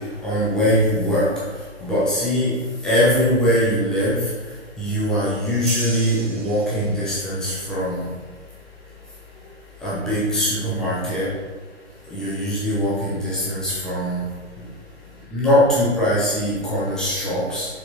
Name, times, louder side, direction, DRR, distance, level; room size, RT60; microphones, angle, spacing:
voice 1, 0.2-1.3 1.8-2.5 2.8-4.2 4.8-8.1 9.8-11.3 12.1-14.2 15.3-17.7, equal, ahead, -9 dB, 0.7 m, -21 dB
sound 1, 5.7-7.2, right 2 dB, 35° right, 1.2 m, -33 dB
6.9 x 5.6 x 4.1 m, 1.3 s
figure-of-eight pair, 140°, 36 cm